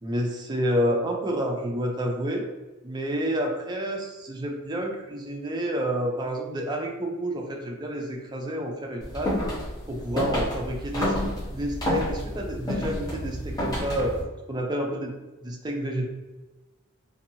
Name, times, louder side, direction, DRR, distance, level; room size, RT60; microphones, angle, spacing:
voice 1, 0.0-2.4 2.8-9.3 9.9-11.1 11.5-14.2 14.5-15.1 15.4-16.1, equal, 20° right, 1 dB, 0.4 m, -29 dB
sound 1, 9.0-14.2, equal, 15° left, 0.9 m, -29 dB
2.8 x 2.6 x 2.7 m, 1.2 s
head